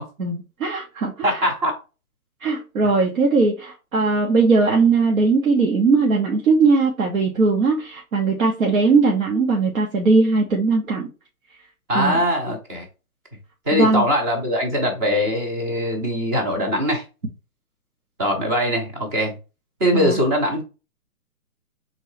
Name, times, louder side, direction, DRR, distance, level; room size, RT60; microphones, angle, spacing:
voice 1, 0.2-1.4 2.4-11.1 11.9-12.2 13.7-14.0 19.9-20.2, right 4 dB, 65° right, 1.4 m, -19 dB
voice 2, 1.2-1.7 2.8-2.9 11.9-12.9 13.7-17.0 18.2-19.3 19.8-20.6, equal, 10° right, 0.6 m, -21 dB
4.2 x 3.7 x 3.3 m
hypercardioid pair, 145°, 44 cm